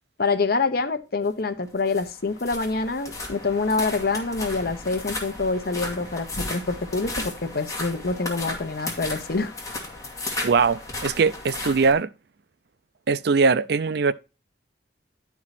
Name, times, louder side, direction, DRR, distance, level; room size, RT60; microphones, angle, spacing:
voice 1, 0.2-9.5, left 3 dB, 60° left, 1.0 m, -26 dB
sound 1, 1.7-11.9, left 2 dB, 20° left, 2.4 m, -35 dB
voice 2, 10.4-12.1 13.1-14.1, right 4 dB, 65° right, 0.5 m, -21 dB
12.0 x 4.7 x 4.1 m
head